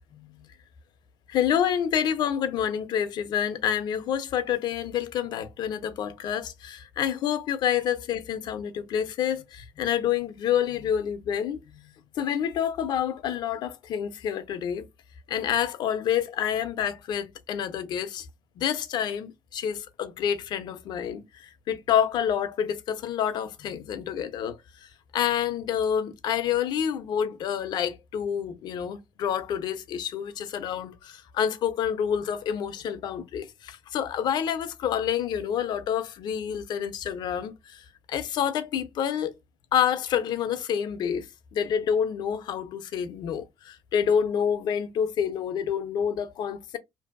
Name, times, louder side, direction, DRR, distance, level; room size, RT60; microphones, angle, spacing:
voice 1, 1.3-11.8 12.2-14.9 15.3-18.3 18.6-24.6 25.1-37.8 38.1-39.4 39.7-41.3 41.5-46.8, left 9 dB, 70° left, 0.5 m, -28 dB
2.6 x 2.5 x 2.4 m
cardioid pair, 95°, 8 cm